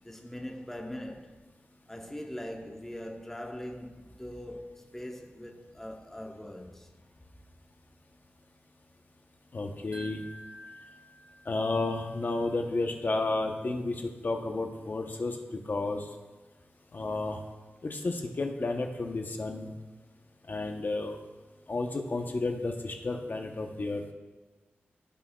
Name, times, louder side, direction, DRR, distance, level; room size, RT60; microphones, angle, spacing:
voice 1, 0.0-1.4 1.9-6.9, left 1 dB, 10° left, 0.9 m, -41 dB
voice 2, 9.5-10.2 11.5-14.0 14.2-15.4 15.7-16.0 16.9-17.4 17.8-19.7 20.5-21.2 21.7-24.1, left 2 dB, 50° left, 0.8 m, -31 dB
Wind chime, 9.9-13.0, right 1 dB, 35° right, 1.6 m, -51 dB
15.5 x 6.2 x 2.3 m
wide cardioid pair, 85°, 4 cm